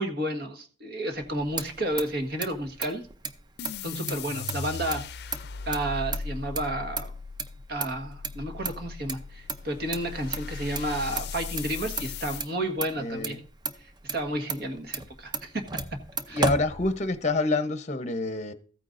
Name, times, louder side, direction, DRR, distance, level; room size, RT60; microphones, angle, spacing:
voice 1, 0.0-3.0 3.8-5.3 5.6-7.1 7.7-13.4 13.8-15.6 16.3-16.5, right 1 dB, 60° right, 1.6 m, -31 dB
Motor vehicle (road), 1.2-17.4, right 3 dB, 25° right, 0.6 m, -36 dB
sound 1, 3.6-12.5, left 5 dB, 65° left, 0.5 m, -38 dB
voice 2, 13.0-13.3 16.3-18.5, left 3 dB, 40° left, 0.9 m, -27 dB
14.5 x 9.1 x 2.6 m
head